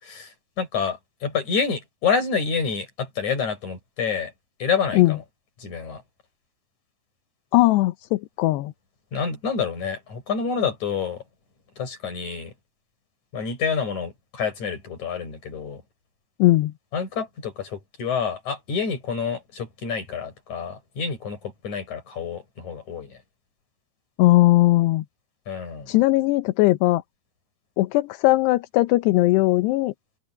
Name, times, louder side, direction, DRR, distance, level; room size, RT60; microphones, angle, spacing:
voice 1, 0.0-4.3 4.6-5.2 5.6-6.0 9.1-11.2 11.8-12.5 13.3-15.8 16.9-23.2 25.5-25.9, left 6 dB, 40° left, 7.5 m, -28 dB
voice 2, 7.5-8.7 16.4-16.7 24.2-25.0 25.9-27.0 27.8-29.9, left 18 dB, 80° left, 2.8 m, -19 dB
open air
omnidirectional pair, 5.1 m